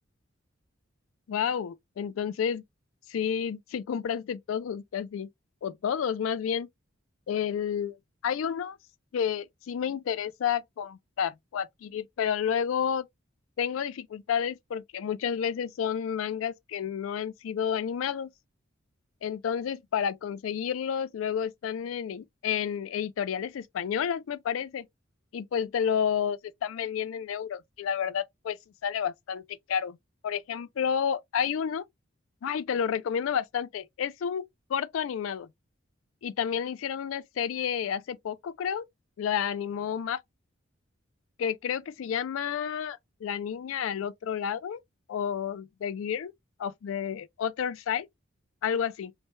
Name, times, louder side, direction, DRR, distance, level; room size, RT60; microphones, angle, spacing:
voice 1, 1.3-2.6 3.1-5.3 5.6-6.7 7.3-7.9 8.2-8.8 9.1-13.1 13.6-18.3 19.2-24.9 25.3-28.6 28.8-30.0 30.2-31.8 32.4-34.4 34.7-35.5 36.2-38.9 39.2-40.2 41.4-44.8 45.1-46.3 46.6-48.1 48.6-49.1, left 8 dB, 85° left, 0.3 m, -30 dB
3.3 x 2.0 x 3.1 m
head